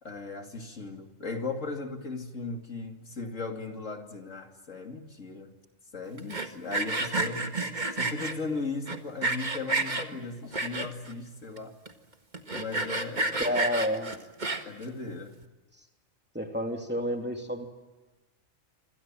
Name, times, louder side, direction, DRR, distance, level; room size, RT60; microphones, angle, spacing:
voice 1, 0.0-5.5 5.9-7.5 7.9-11.7 12.5-13.5 14.7-15.4, left 3 dB, 70° left, 4 dB, 3.1 m, -37 dB
Sawing, 6.2-8.3 8.9-10.1 10.5-11.1 11.6-11.7 11.9-12.0 12.3-14.8, right 3 dB, 35° right, 2.0 m, -30 dB
voice 2, 13.4-14.2 16.3-17.7, equal, 10° right, 3 dB, 3.0 m, -30 dB
26.5 x 26.5 x 7.6 m, 1.2 s
omnidirectional pair, 1.4 m